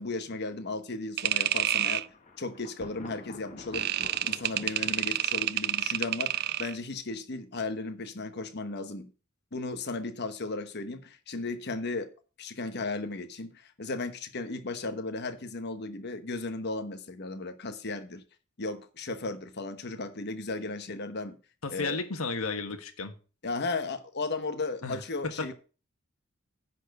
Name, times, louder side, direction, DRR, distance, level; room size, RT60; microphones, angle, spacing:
voice 1, 0.0-2.0 2.4-3.9 4.3-9.1 9.5-12.1 12.4-18.2 18.6-21.4 21.7-22.0 23.4-25.5, left 3 dB, 55° left, 1.1 m, -35 dB
Thunder, 1.2-7.0, left 2 dB, 35° left, 1.4 m, -49 dB
sound 1, 1.2-2.1 3.7-6.8, right 12 dB, 50° right, 0.4 m, -29 dB
voice 2, 21.6-23.1 24.8-25.0 25.4-25.5, left 3 dB, 90° left, 1.4 m, -33 dB
10.0 x 4.3 x 6.6 m
head